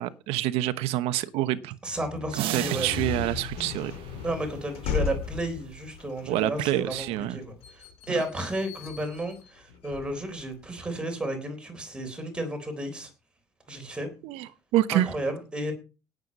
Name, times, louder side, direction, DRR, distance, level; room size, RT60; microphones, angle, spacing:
voice 1, 0.0-1.8 2.5-3.9 6.3-7.4 14.2-15.1, right 14 dB, 90° right, 12 dB, 1.0 m, -27 dB
voice 2, 1.8-2.9 4.2-13.1 13.7-14.1 14.9-15.7, right 1 dB, 10° right, 5 dB, 3.9 m, -33 dB
sound 1, 1.9-10.6, left 6 dB, 80° left, 2.9 m, -37 dB
sound 2, 2.3-5.1, right 15 dB, 65° right, 0.7 m, -37 dB
17.5 x 7.9 x 5.3 m, 0.33 s
cardioid pair, 175°, 10 cm